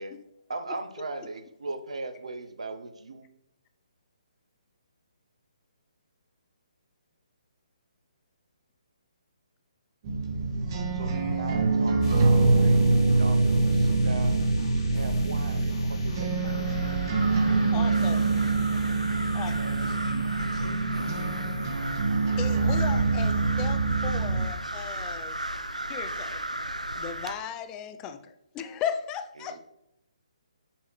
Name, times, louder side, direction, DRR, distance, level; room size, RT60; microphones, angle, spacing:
voice 1, 0.5-3.3 10.9-16.9 17.7-18.2 29.4-29.6, right 3 dB, 65° right, 7 dB, 0.8 m, -39 dB
sound 1, 10.0-24.5, right 3 dB, 35° right, 1.0 m, -25 dB
sound 2, 12.0-23.9, left 3 dB, 40° left, 1.5 m, -45 dB
sound 3, 16.4-27.3, right 1 dB, 90° right, 0.6 m, -36 dB
voice 2, 17.7-18.3 19.3-19.8 22.4-25.3 25.8-26.5 27.0-29.6, left 7 dB, 15° left, 8 dB, 0.5 m, -36 dB
voice 3, 19.5-21.6, left 1 dB, 75° left, -1 dB, 1.5 m, -41 dB
6.3 x 5.8 x 3.3 m, 0.85 s
figure-of-eight pair, 140°, 4 cm